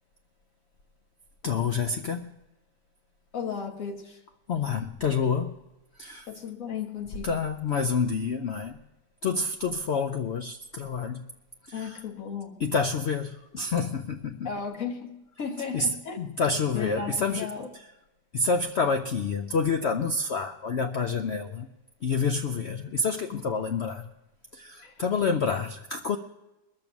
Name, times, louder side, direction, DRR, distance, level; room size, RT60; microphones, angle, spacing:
voice 1, 1.4-2.3 4.5-5.5 6.0-6.3 7.2-8.8 9.2-11.3 11.7-12.0 12.6-14.5 15.7-17.5 18.3-21.7 22.0-24.1 24.5-26.2, left 4 dB, 70° left, 6 dB, 0.6 m, -28 dB
voice 2, 3.3-4.2 6.3-7.3 11.7-12.6 14.4-16.2 16.7-17.7 23.3-23.4 24.8-24.9, left 6 dB, 50° left, 3 dB, 1.8 m, -35 dB
21.0 x 7.0 x 6.0 m, 1.0 s
omnidirectional pair, 1.8 m